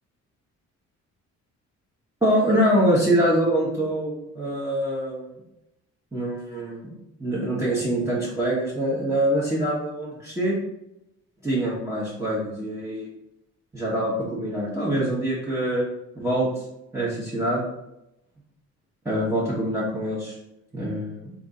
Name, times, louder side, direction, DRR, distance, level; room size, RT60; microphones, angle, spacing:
voice 1, 2.2-5.2 6.1-6.9 7.2-10.6 11.4-13.1 13.7-15.8 16.1-16.5 16.9-17.6 19.0-20.3 20.7-21.3, right 1 dB, 10° right, -8 dB, 1.1 m, -24 dB
3.5 x 2.7 x 3.7 m, 0.87 s
cardioid pair, 90°, 30 cm